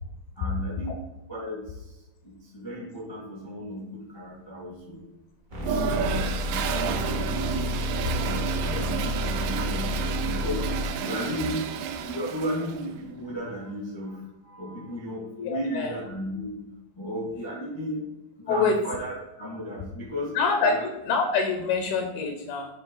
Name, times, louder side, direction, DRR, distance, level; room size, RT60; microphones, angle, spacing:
voice 1, 0.3-1.0 1.3-5.0 6.0-7.5 8.2-9.9 10.2-11.6 12.0-16.6 16.9-18.0 18.4-20.3 20.6-20.8, equal, 20° left, -5 dB, 0.6 m, -35 dB
sound 1, 5.5-10.9, left 1 dB, 65° right, 0.7 m, -30 dB
Toilet flush, 5.6-12.9, right 7 dB, 85° right, 2.9 m, -31 dB
voice 2, 15.4-16.0 18.5-18.8 20.4-22.7, left 4 dB, 75° left, 4 dB, 2.3 m, -26 dB
9.1 x 3.3 x 4.8 m, 0.97 s
omnidirectional pair, 5.1 m